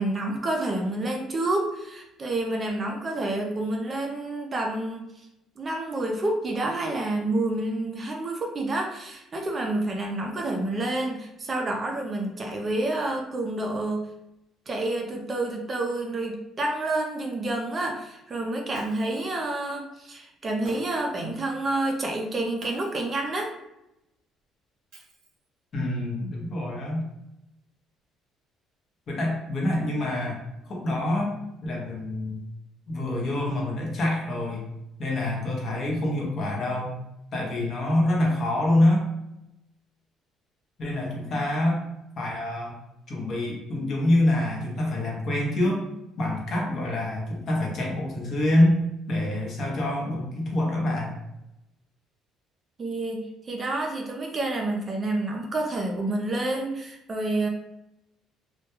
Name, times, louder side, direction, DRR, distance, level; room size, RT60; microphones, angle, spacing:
voice 1, 0.0-5.1 5.6-14.0 14.7-23.5 41.3-41.4 52.8-57.5, right 2 dB, 25° right, 1 dB, 0.4 m, -29 dB
Shatter, 18.7-19.4 20.6-21.2 22.6-23.2 24.9-25.6, right 2 dB, 70° right, 0.8 m, -48 dB
voice 2, 25.7-27.0 29.1-32.4 32.9-34.6 35.0-37.0 37.3-39.1 40.8-41.8 42.2-42.8 43.1-45.8 46.2-48.8 49.1-51.2, left 1 dB, 45° left, -1 dB, 0.7 m, -26 dB
2.2 x 2.1 x 2.9 m, 0.88 s
cardioid pair, 140°, 0 cm